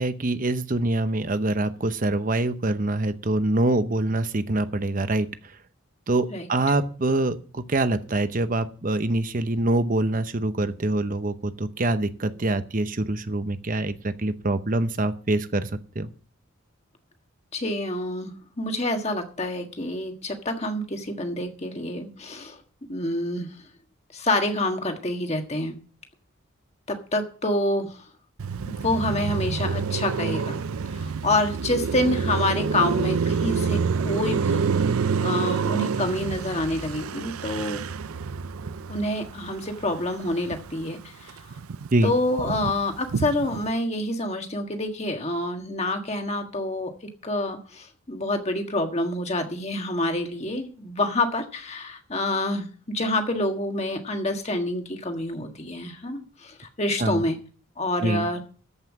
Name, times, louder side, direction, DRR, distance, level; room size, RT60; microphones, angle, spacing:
voice 1, 0.0-5.3 6.1-15.7 15.9-16.1 41.9-42.1 57.0-57.2 58.0-58.3, right 2 dB, 40° right, 11 dB, 0.8 m, -25 dB
voice 2, 17.5-22.6 22.9-23.5 24.1-25.8 26.9-28.0 28.7-30.6 30.9-34.6 35.2-37.8 38.9-41.4 42.0-46.9 47.2-57.4 57.8-58.4, left 1 dB, 30° left, 5 dB, 1.5 m, -27 dB
Car passing by, 28.4-40.9 41.2-43.7, right 5 dB, 85° right, 0.5 m, -28 dB
13.5 x 5.6 x 7.3 m, 0.43 s
head